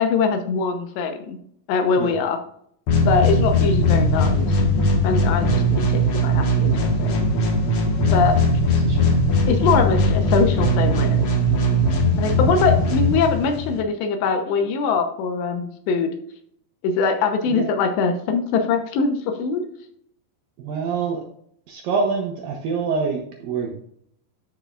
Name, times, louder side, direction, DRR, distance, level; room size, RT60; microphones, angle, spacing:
voice 1, 0.0-1.4 1.7-2.4 3.1-4.6 5.0-7.2 8.1-8.4 9.5-11.3 12.2-16.1 16.8-19.6, left 5 dB, 80° left, 6 dB, 3.1 m, -22 dB
sound 1, 2.9-13.8, equal, 65° left, 1.8 m, -19 dB
voice 2, 8.8-9.2 17.5-17.7 20.6-21.2 21.7-23.9, right 5 dB, 70° right, 1 dB, 2.2 m, -26 dB
12.5 x 5.6 x 2.5 m, 0.67 s
omnidirectional pair, 5.1 m